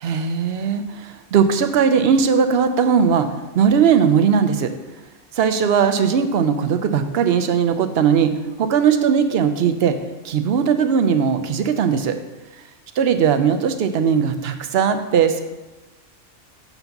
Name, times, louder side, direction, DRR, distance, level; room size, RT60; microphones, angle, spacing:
voice 1, 0.0-3.3 3.5-4.7 5.3-10.0 10.2-12.2 13.0-15.4, right 7 dB, 60° right, 9 dB, 0.8 m, -18 dB
7.0 x 4.0 x 5.8 m, 1.1 s
omnidirectional pair, 1.3 m